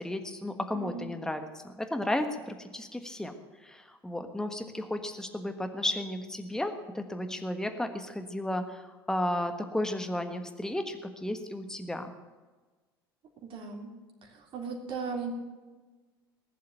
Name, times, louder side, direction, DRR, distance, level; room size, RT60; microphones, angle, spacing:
voice 1, 0.0-3.3 3.6-12.1, left 1 dB, 5° left, 6 dB, 1.4 m, -33 dB
voice 2, 0.7-1.1 13.4-13.9 14.2-15.3, right 5 dB, 40° right, 1 dB, 3.6 m, -37 dB
19.5 x 7.5 x 9.1 m, 1.3 s
hypercardioid pair, 75°, 13 cm